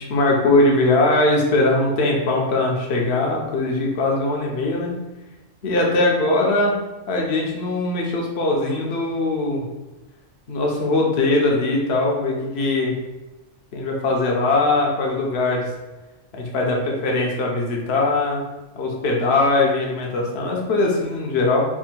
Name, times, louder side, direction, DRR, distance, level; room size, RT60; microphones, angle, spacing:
voice 1, 0.0-4.9 5.6-6.7 7.1-9.6 10.5-12.9 13.7-15.7 16.3-18.4 18.8-21.7, left 2 dB, 60° left, -1 dB, 0.9 m, -20 dB
3.5 x 2.2 x 4.3 m, 1.1 s
omnidirectional pair, 1.4 m